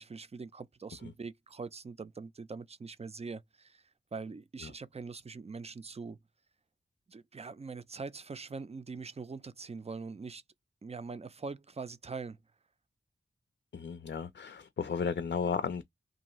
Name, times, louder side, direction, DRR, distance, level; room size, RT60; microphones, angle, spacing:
voice 1, 0.0-3.8 4.1-6.2 7.1-10.4 10.8-12.4, right 4 dB, 30° right, 0.4 m, -43 dB
voice 2, 13.7-15.8, left 6 dB, 55° left, 0.5 m, -34 dB
2.6 x 2.3 x 3.0 m
cardioid pair, 50°, 21 cm